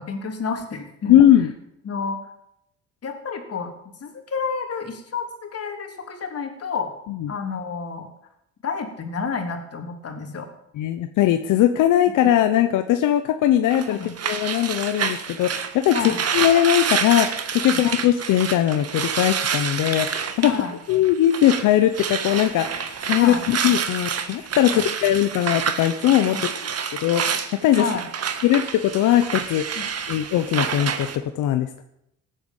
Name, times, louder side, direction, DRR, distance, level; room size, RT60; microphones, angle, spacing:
voice 1, 0.0-1.2 1.9-2.2 3.0-3.7 4.0-6.9 7.3-8.1 8.6-10.5 13.9-14.1 15.9-16.2 17.7-17.9 20.4-20.7 23.2-23.4 24.6-24.8 26.3-26.4 27.7-28.0 29.8-29.9, left 5 dB, 50° left, 4 dB, 3.5 m, -30 dB
voice 2, 1.1-1.5 7.1-7.3 10.8-14.0 14.2-20.5 20.9-26.5 27.0-27.2 27.6-27.9 28.4-31.1 31.3-31.8, left 12 dB, 90° left, 8 dB, 1.0 m, -20 dB
sound 1, 13.7-21.7 21.9-31.2, right 7 dB, 55° right, 1.7 m, -28 dB
17.0 x 9.4 x 7.3 m, 0.79 s
cardioid pair, 90°, 30 cm